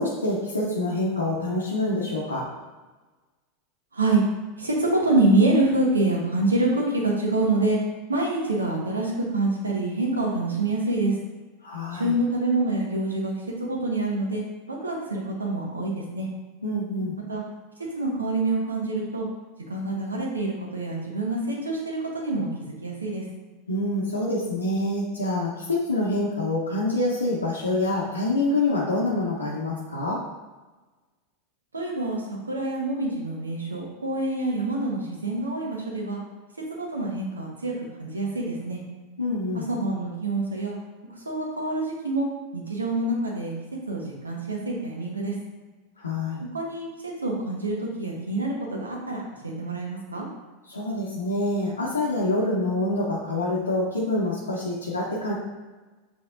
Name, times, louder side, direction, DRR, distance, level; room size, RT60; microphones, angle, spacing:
voice 1, 0.0-2.5 11.6-12.1 16.6-17.2 23.7-30.2 39.2-39.7 46.0-46.4 50.7-55.3, left 2 dB, 90° left, -5 dB, 0.7 m, -26 dB
voice 2, 4.6-7.8 8.1-11.1 11.9-13.3 13.6-16.3 17.3-17.4 18.0-19.3 19.7-23.2 31.7-36.2 36.8-37.7 38.0-38.8 39.5-40.7 41.2-43.5 43.9-45.3 46.5-50.3, right 2 dB, 90° right, -2 dB, 0.9 m, -26 dB
5.9 x 3.4 x 2.5 m, 1.2 s
figure-of-eight pair, 90°, 0 cm